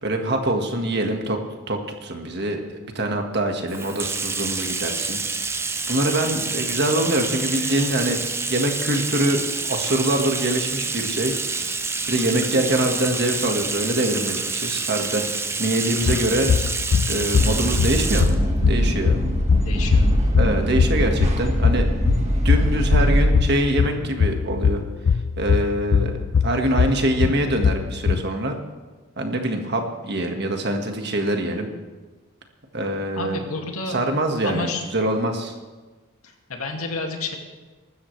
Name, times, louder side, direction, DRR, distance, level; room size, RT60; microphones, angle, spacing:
voice 1, 0.0-1.4 1.7-5.5 5.9-11.3 12.1-16.6 17.1-18.4 18.7-19.2 20.4-21.9 22.4-24.8 25.4-28.6 29.2-31.7 32.7-33.5 33.9-35.5, right 1 dB, 50° right, 3 dB, 1.7 m, -24 dB
Bathtub (filling or washing), 3.7-18.4, right 4 dB, 10° right, 0.5 m, -28 dB
sound 1, 16.1-28.2, left 6 dB, 60° left, 0.3 m, -22 dB
sound 2, 17.4-23.3, equal, 30° right, 1.7 m, -22 dB
voice 2, 19.6-20.1 33.2-34.0 34.4-34.8 36.2-37.4, left 3 dB, 80° left, 2 dB, 2.3 m, -30 dB
23.5 x 13.0 x 3.3 m, 1.3 s
head